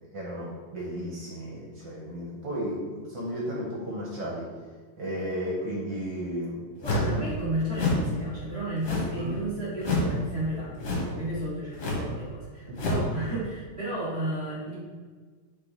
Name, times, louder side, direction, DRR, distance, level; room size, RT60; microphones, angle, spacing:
voice 1, 0.1-4.5 5.0-7.1 9.1-9.4 12.7-13.0, equal, 60° right, -5 dB, 2.0 m, -34 dB
sound 1, 6.8-7.2 7.7-8.1 8.8-9.2 9.8-10.2 10.8-11.2 11.8-12.1 12.7-13.1, left 1 dB, 55° left, 1.9 m, -27 dB
voice 2, 6.8-14.8, right 1 dB, 30° right, -9 dB, 1.6 m, -33 dB
8.8 x 4.0 x 4.1 m, 1.5 s
omnidirectional pair, 2.3 m